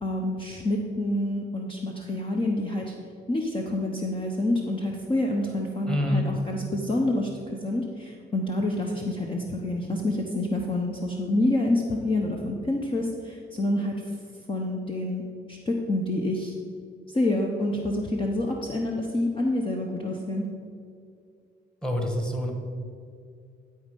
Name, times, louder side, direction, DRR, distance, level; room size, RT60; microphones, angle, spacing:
voice 1, 0.0-2.9 3.3-13.9 14.5-15.2 15.5-16.6 17.1-20.4, left 1 dB, 25° left, 0 dB, 1.0 m, -27 dB
voice 2, 5.9-6.3 21.8-22.5, left 1 dB, 5° left, 2 dB, 1.7 m, -26 dB
12.5 x 4.3 x 5.4 m, 2.3 s
cardioid pair, 90°, 20 cm